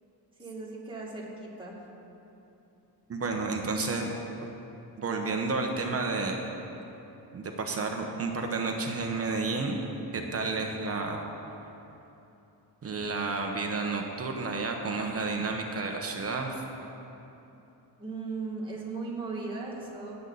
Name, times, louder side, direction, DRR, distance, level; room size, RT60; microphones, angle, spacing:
voice 1, 0.4-1.8 18.0-20.2, right 3 dB, 10° right, -4 dB, 2.3 m, -37 dB
voice 2, 3.1-4.1 5.0-6.4 7.3-9.8 10.1-11.2 12.8-16.6, right 3 dB, 35° right, 2 dB, 1.2 m, -31 dB
18.0 x 8.3 x 4.1 m, 2.9 s
cardioid pair, 130°, 40 cm